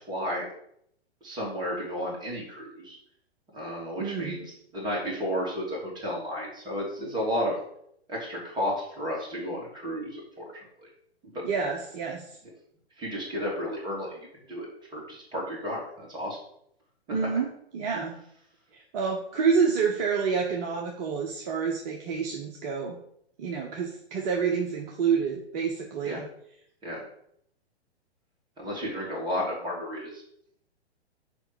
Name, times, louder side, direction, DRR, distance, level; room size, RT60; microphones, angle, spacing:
voice 1, 0.1-0.5 1.2-3.0 3.5-7.6 8.1-10.4 10.8-10.9 11.3-11.4 13.0-14.2 14.5-14.7 14.9-16.4 26.0-26.2 26.8-27.0 28.6-30.2, equal, 15° right, -4 dB, 3.2 m, -32 dB
voice 2, 4.0-4.4 11.4-12.4 17.1-18.2 18.7-23.0 23.4-26.3, right 6 dB, 35° right, 1 dB, 1.1 m, -28 dB
7.0 x 5.1 x 7.0 m, 0.70 s
figure-of-eight pair, 115°, 33 cm